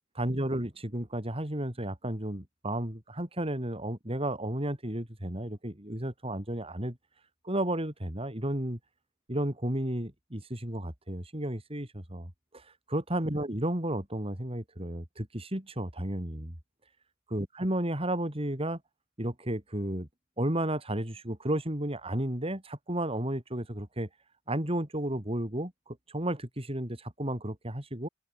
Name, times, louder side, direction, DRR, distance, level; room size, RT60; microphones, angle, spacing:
voice 1, 0.1-7.0 7.4-8.8 9.3-12.3 12.9-16.5 17.3-18.8 19.2-20.1 20.4-24.1 24.5-28.1, right 1 dB, 30° right, 3.9 m, -33 dB
open air
head